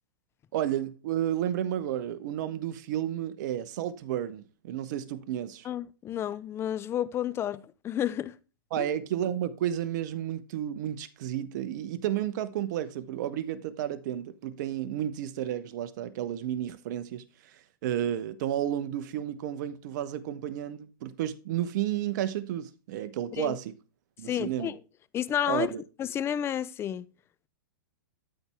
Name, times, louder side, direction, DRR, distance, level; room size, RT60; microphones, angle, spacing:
voice 1, 0.5-5.7 8.7-17.2 17.5-23.7 24.2-24.7 25.5-25.8, right 11 dB, 55° right, 1.0 m, -32 dB
voice 2, 5.6-8.3 8.8-8.9 23.3-23.6 24.3-24.8 25.1-25.7 26.0-27.1, left 10 dB, 20° left, 0.5 m, -31 dB
13.0 x 4.3 x 3.5 m
hypercardioid pair, 125°, 12 cm